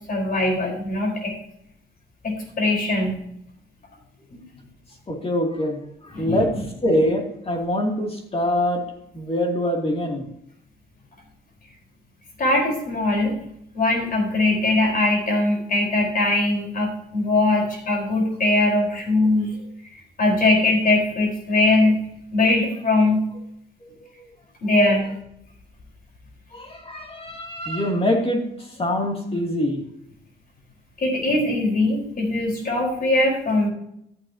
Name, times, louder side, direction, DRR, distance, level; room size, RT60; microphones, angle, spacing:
voice 1, 0.1-1.3 2.2-3.2 4.3-4.4 6.1-6.4 12.4-13.4 13.7-19.5 20.2-22.0 22.3-23.2 24.6-25.1 31.0-33.7, left 2 dB, 45° left, 0 dB, 4.4 m, -21 dB
voice 2, 5.1-8.8 9.1-10.3 23.8-24.3 26.5-29.8, left 1 dB, 30° left, 1 dB, 2.7 m, -24 dB
13.5 x 8.7 x 2.9 m, 0.75 s
cardioid pair, 90°, 20 cm